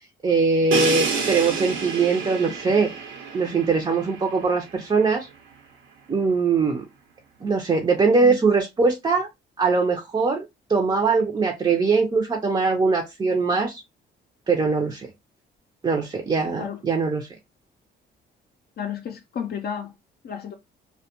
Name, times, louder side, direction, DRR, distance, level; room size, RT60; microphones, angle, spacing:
voice 1, 0.2-2.9 3.3-5.3 6.1-6.8 7.4-9.3 9.6-13.8 14.5-15.1 15.8-17.3, right 4 dB, 25° right, 0.5 m, -22 dB
Crash cymbal, 0.7-4.5, right 5 dB, 85° right, 0.9 m, -28 dB
voice 2, 18.8-19.9 20.2-20.5, left 8 dB, 55° left, 0.5 m, -32 dB
2.2 x 2.1 x 2.9 m
cardioid pair, 90°, 20 cm